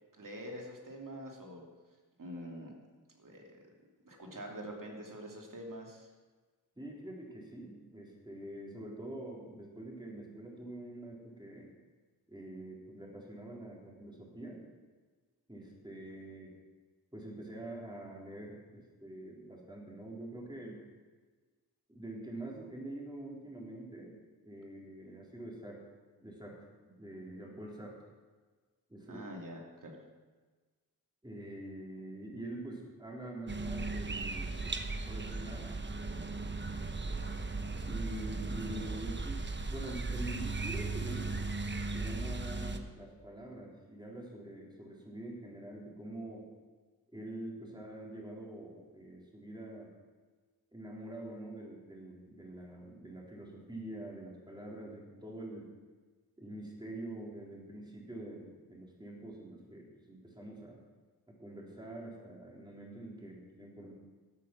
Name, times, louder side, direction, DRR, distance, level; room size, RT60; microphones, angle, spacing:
voice 1, 0.2-1.7 2.2-2.7 3.2-3.6 4.0-6.1 29.1-30.0, equal, 55° right, 0 dB, 2.8 m, -45 dB
voice 2, 6.8-11.7 12.3-14.6 15.5-16.5 17.1-20.8 21.9-25.8 26.2-26.6 26.8-27.9 28.9-29.2 31.2-35.8 37.8-41.4 41.8-46.4 47.1-49.9 50.7-55.7 56.4-60.8 61.4-63.9, right 1 dB, 10° right, -3 dB, 3.8 m, -45 dB
sound 1, 33.5-42.8, right 3 dB, 30° right, 1.0 m, -37 dB
13.0 x 8.5 x 6.1 m, 1.4 s
cardioid pair, 55°, 37 cm